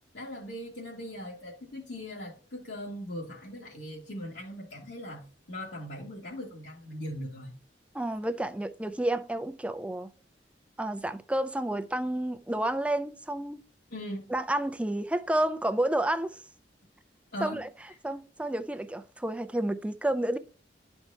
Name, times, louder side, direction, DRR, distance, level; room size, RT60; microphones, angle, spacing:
voice 1, 0.1-7.5 13.9-14.3 17.3-17.6, equal, 80° left, 1.9 m, -40 dB
voice 2, 7.9-10.1 10.8-13.6 14.3-16.4 17.4-17.7 18.0-20.4, right 1 dB, 5° right, 0.4 m, -30 dB
11.0 x 4.4 x 2.7 m
head